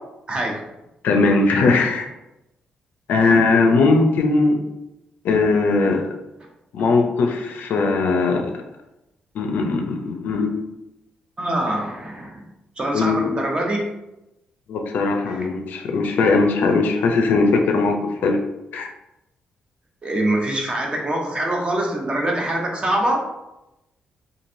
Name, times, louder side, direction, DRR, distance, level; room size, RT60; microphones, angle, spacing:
voice 1, 0.3-0.7 6.8-7.0 11.4-12.4 12.8-13.8 15.3-15.5 20.0-23.3, right 1 dB, 35° right, 0 dB, 0.8 m, -24 dB
voice 2, 1.0-2.1 3.1-4.6 5.2-6.1 6.7-8.5 9.3-10.6 12.9-13.3 14.7-18.4 18.7-18.9, left 3 dB, 75° left, 3 dB, 0.4 m, -19 dB
3.1 x 2.6 x 2.6 m, 0.93 s
cardioid pair, 70°, 3 cm